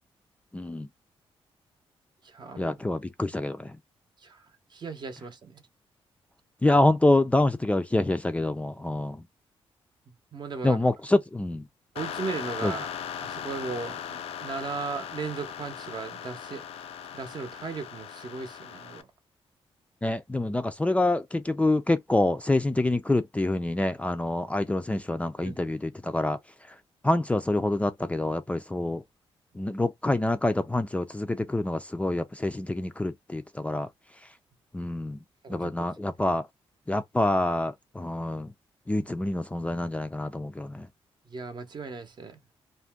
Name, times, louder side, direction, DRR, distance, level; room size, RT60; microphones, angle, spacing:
voice 1, 0.5-0.9 2.6-3.8 6.6-9.2 10.6-11.7 12.6-12.7 20.0-26.4 27.0-29.0 29.5-33.9 34.7-35.2 35.5-36.5 36.9-38.5 38.9-40.9, left 2 dB, 10° left, 0.4 m, -26 dB
voice 2, 2.2-2.7 4.2-5.6 10.3-10.8 11.9-12.9 13.2-19.1 25.4-25.6 35.4-35.7 41.3-42.4, right 4 dB, 45° right, 0.7 m, -37 dB
sound 1, 12.0-19.0, left 8 dB, 80° left, 0.4 m, -38 dB
2.5 x 2.2 x 3.3 m
cardioid pair, 95°, 10 cm